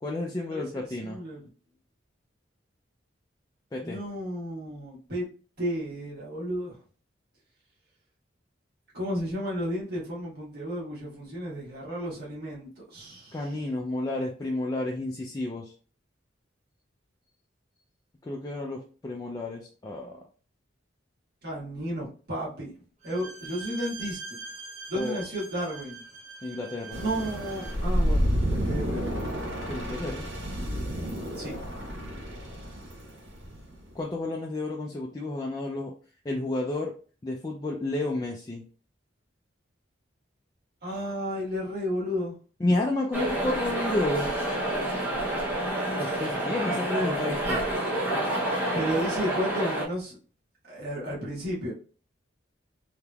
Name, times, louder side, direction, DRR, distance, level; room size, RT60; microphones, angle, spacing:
voice 1, 0.0-1.2 3.7-4.0 13.3-15.7 18.2-20.2 24.9-25.2 26.4-27.0 29.7-30.3 33.9-35.9 36.2-36.9 37.2-38.6 42.6-44.3 46.0-47.6, left 2 dB, 20° left, -1 dB, 0.3 m, -31 dB
voice 2, 1.0-1.4 3.8-5.2 5.6-6.8 8.9-13.4 21.4-22.7 23.0-24.4 24.9-26.0 27.0-29.1 31.4-31.5 40.8-42.3 48.7-50.2 50.7-51.7, equal, 55° right, -6 dB, 1.4 m, -33 dB
Bowed string instrument, 23.0-27.9, right 4 dB, 35° right, 0.9 m, -42 dB
sound 1, 26.9-33.8, equal, 80° right, 1.0 m, -30 dB
sound 2, 43.1-49.8, right 1 dB, 10° right, 0.7 m, -28 dB
3.4 x 2.8 x 2.3 m, 0.40 s
head